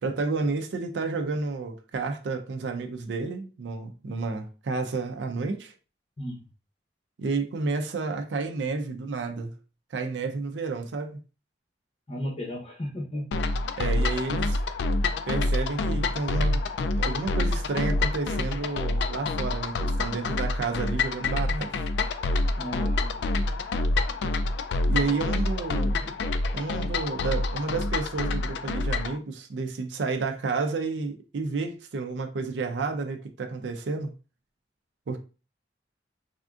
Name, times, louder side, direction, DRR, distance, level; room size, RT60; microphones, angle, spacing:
voice 1, 0.0-5.7 7.2-9.5 9.9-11.2 13.8-14.6 15.3-16.6 17.0-21.8 24.8-26.2 26.5-34.1 35.1-35.2, right 4 dB, 85° right, 0.4 m, -31 dB
voice 2, 12.1-13.3 13.9-14.1 22.6-23.3 25.0-25.2, equal, 35° left, 0.6 m, -35 dB
sound 1, 13.3-29.2, left 2 dB, 75° left, 0.3 m, -27 dB
3.4 x 2.5 x 2.3 m
head